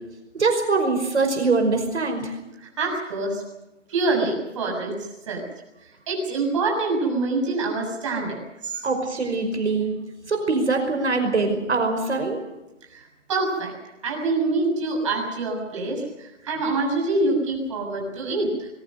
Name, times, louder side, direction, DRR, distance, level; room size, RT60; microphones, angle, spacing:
voice 1, 0.3-2.4 8.8-9.9 10.3-12.4, right 3 dB, 65° right, 5 dB, 5.3 m, -23 dB
voice 2, 2.6-3.4 3.9-4.9 5.3-5.4 5.8-8.9 12.9-13.7 14.0-18.7, right 3 dB, 25° right, 0 dB, 7.1 m, -26 dB
23.5 x 22.0 x 6.8 m, 1.0 s
hypercardioid pair, 170°, 37 cm